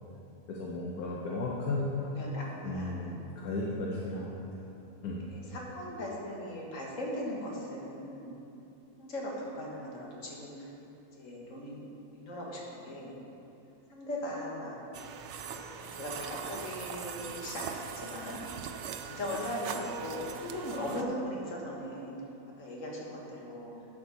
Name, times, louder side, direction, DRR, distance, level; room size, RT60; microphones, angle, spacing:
voice 1, 0.5-1.9 2.6-4.4 5.0-5.2, left 2 dB, 75° left, -4 dB, 1.4 m, -34 dB
voice 2, 2.0-3.2 4.2-4.3 5.3-8.4 9.0-10.7 11.2-11.8 12.1-13.1 13.9-14.8 15.8-18.4 19.0-22.2 22.6-23.7, left 1 dB, 55° left, -3 dB, 1.9 m, -39 dB
sound 1, 14.9-21.0, right 7 dB, 65° right, 0.7 m, -41 dB
11.0 x 7.2 x 4.2 m, 2.9 s
omnidirectional pair, 1.6 m